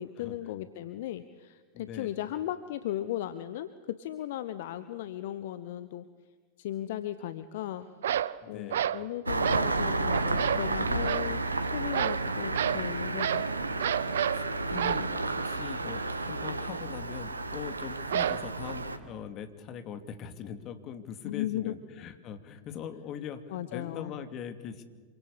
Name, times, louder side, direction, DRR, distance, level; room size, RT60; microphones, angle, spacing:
voice 1, 0.0-6.1 6.6-7.9 8.5-13.5 21.2-21.7 23.5-24.1, left 13 dB, 55° left, 13 dB, 1.1 m, -36 dB
voice 2, 1.7-2.2 8.4-8.8 14.0-24.8, left 8 dB, 35° left, 9 dB, 2.7 m, -41 dB
sound 1, 8.0-8.4 8.7-9.0 9.4-9.7 10.1-10.7 11.0-11.3 11.9-12.3 12.5-12.9 13.2-13.5 13.8-14.4 14.8-15.1 18.1-18.7, right 10 dB, 60° right, 0.8 m, -30 dB
Engine starting, 9.3-19.0, right 2 dB, 80° right, 1.8 m, -31 dB
27.0 x 24.5 x 8.3 m, 1.4 s
figure-of-eight pair, 90°, 0 cm